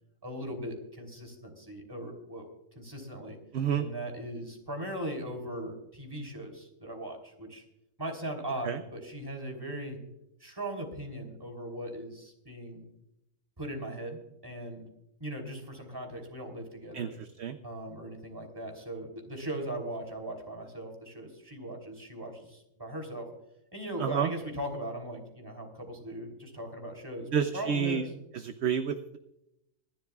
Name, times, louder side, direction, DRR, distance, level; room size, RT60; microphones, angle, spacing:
voice 1, 0.2-2.5 2.7-3.4 3.7-7.6 8.0-10.0 10.4-12.8 13.6-14.8 15.2-17.1 17.6-23.3 23.7-27.3 27.5-28.0, right 1 dB, 15° right, 3 dB, 3.2 m, -39 dB
voice 2, 3.5-3.9 8.6-8.8 16.9-17.6 24.0-24.3 27.3-28.1 28.3-29.2, right 7 dB, 60° right, 9 dB, 0.9 m, -29 dB
25.0 x 12.0 x 2.4 m, 0.84 s
omnidirectional pair, 1.4 m